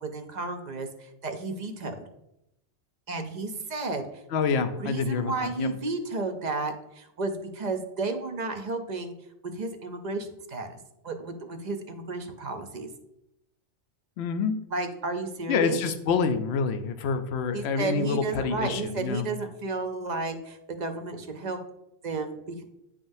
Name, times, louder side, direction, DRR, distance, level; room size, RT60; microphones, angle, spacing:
voice 1, 0.0-2.0 3.1-4.0 4.8-9.1 9.4-10.7 11.0-12.9 14.7-15.8 17.5-21.6 22.0-22.6, right 3 dB, 50° right, 6 dB, 0.6 m, -32 dB
voice 2, 4.3-5.7 14.2-14.6 15.5-19.3, left 5 dB, 70° left, 9 dB, 0.8 m, -27 dB
9.8 x 3.7 x 2.6 m, 0.85 s
omnidirectional pair, 1.2 m